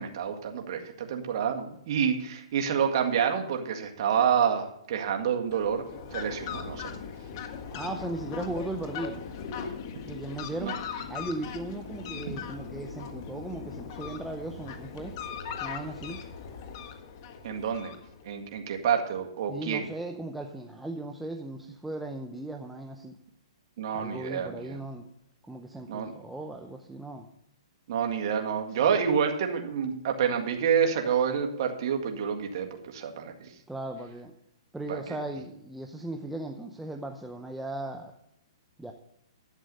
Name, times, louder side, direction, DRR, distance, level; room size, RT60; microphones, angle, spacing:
voice 1, 0.0-5.8 6.1-6.9 10.6-10.7 17.4-17.9 18.2-19.9 23.8-24.8 25.9-26.1 27.9-33.5 34.9-35.2, right 7 dB, 50° right, 3 dB, 1.8 m, -28 dB
Fowl, 5.4-18.4, left 6 dB, 45° left, 1.4 m, -39 dB
voice 2, 7.7-9.2 10.1-10.8 11.1-15.1 15.6-16.2 19.5-23.2 23.9-25.1 25.5-27.3 33.7-34.3 34.7-38.1 38.8-38.9, right 2 dB, 5° right, 3 dB, 0.7 m, -37 dB
11.5 x 7.8 x 5.4 m, 0.78 s
hypercardioid pair, 145°, 3 cm